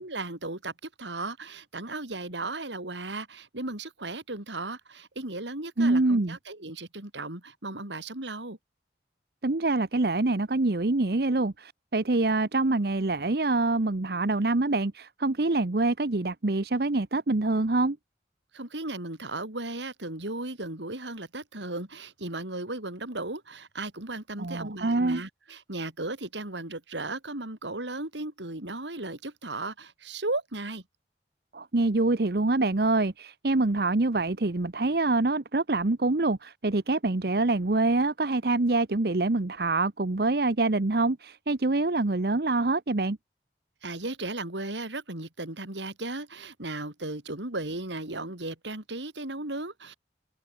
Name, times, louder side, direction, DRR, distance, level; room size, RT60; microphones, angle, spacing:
voice 1, 0.0-8.6 18.5-30.8 43.8-49.9, right 2 dB, 85° right, 4.2 m, -36 dB
voice 2, 5.8-6.4 9.4-18.0 24.4-25.2 31.5-43.2, right 2 dB, 60° right, 0.9 m, -25 dB
head